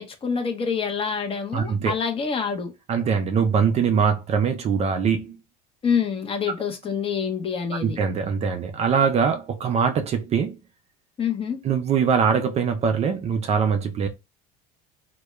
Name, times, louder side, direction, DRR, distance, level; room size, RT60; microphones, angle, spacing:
voice 1, 0.0-2.7 5.8-8.0 11.2-11.6, left 6 dB, 30° left, 0.6 m, -26 dB
voice 2, 1.5-1.9 2.9-5.4 7.8-10.6 11.6-14.1, right 6 dB, 35° right, 0.4 m, -22 dB
2.2 x 2.1 x 2.9 m
supercardioid pair, 105°, 19 cm